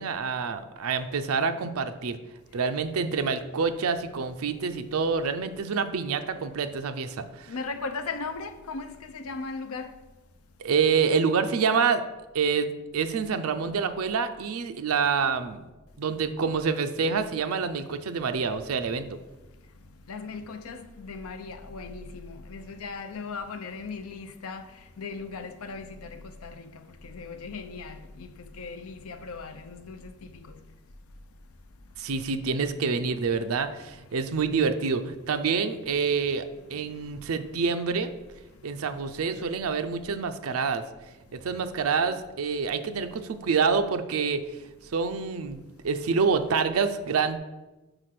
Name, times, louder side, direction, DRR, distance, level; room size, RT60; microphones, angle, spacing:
voice 1, 0.0-2.2 2.5-7.5 10.6-12.0 12.3-15.7 16.0-19.2 32.0-38.1 38.6-40.8 41.3-44.6 44.9-47.4, right 5 dB, 80° right, 0.5 m, -27 dB
voice 2, 7.5-9.9 20.1-24.6 25.0-26.7 27.0-28.3 28.6-30.1, left 4 dB, 80° left, 0.6 m, -37 dB
4.9 x 4.6 x 5.8 m
head